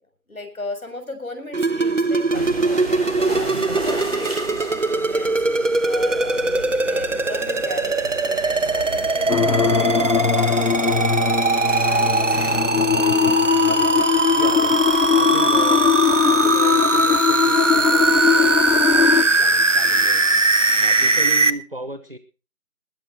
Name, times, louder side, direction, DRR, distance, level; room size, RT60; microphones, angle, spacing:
voice 1, 0.3-9.4 9.6-11.5 11.8-13.0, left 2 dB, 65° left, 7 dB, 6.9 m, -37 dB
sound 1, 1.5-21.5, right 3 dB, 55° right, 1.2 m, -20 dB
sound 2, 2.3-12.6, equal, 5° left, 3.7 m, -35 dB
sound 3, 9.3-19.2, left 7 dB, 90° left, 1.0 m, -20 dB
voice 2, 14.3-22.2, right 1 dB, 40° right, 7 dB, 1.0 m, -36 dB
21.0 x 8.8 x 4.4 m, 0.33 s
figure-of-eight pair, 175°, 45 cm